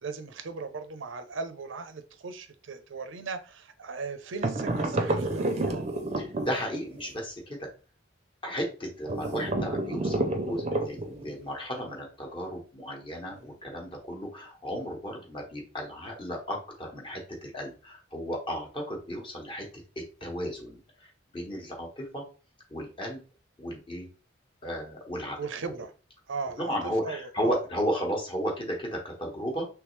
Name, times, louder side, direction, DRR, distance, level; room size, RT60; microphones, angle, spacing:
voice 1, 0.0-5.9 13.3-13.4 25.4-25.9 26.3-26.7 27.0-27.6, right 4 dB, 85° right, 0.6 m, -37 dB
sound 1, 4.4-7.0 9.1-11.3, right 2 dB, 35° right, 0.6 m, -29 dB
voice 2, 6.2-7.7 8.4-19.7 20.2-22.2 22.7-23.2 23.6-24.1 24.6-25.4 26.6-29.7, equal, 25° left, 1.1 m, -34 dB
3.4 x 3.2 x 3.2 m
head